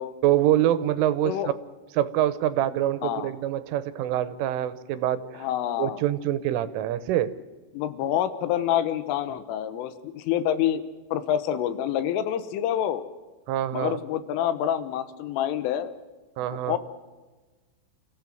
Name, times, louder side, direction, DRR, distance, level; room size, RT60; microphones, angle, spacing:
voice 1, 0.2-1.5 2.0-5.5 5.8-7.4 13.5-14.0 16.4-16.8, right 12 dB, 85° right, 14 dB, 3.5 m, -25 dB
voice 2, 5.4-6.0 7.7-10.8 11.1-13.0 13.7-16.0 16.5-16.8, left 10 dB, 85° left, 12 dB, 3.7 m, -27 dB
28.5 x 15.5 x 7.7 m, 1.3 s
omnidirectional pair, 5.6 m